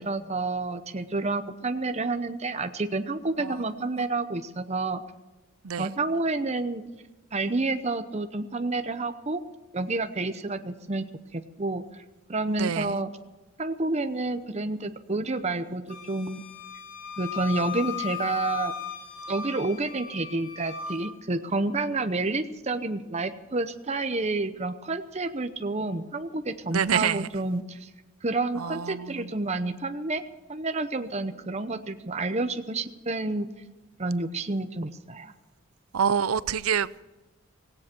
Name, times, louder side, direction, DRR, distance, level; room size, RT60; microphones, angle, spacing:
voice 1, 0.0-5.0 5.8-6.8 7.3-9.4 9.7-11.0 11.3-11.8 12.3-13.1 13.6-16.4 17.2-18.7 19.3-27.9 28.2-30.2 30.5-33.5 34.0-35.3, right 2 dB, 30° right, 0.8 m, -29 dB
voice 2, 5.6-6.0 12.6-13.0 26.7-27.3 28.5-29.3 35.9-37.0, right 7 dB, 90° right, 0.6 m, -27 dB
Wind instrument woodwind instrument, 15.9-21.1, left 8 dB, 60° left, 3.4 m, -37 dB
17.5 x 17.0 x 4.5 m
head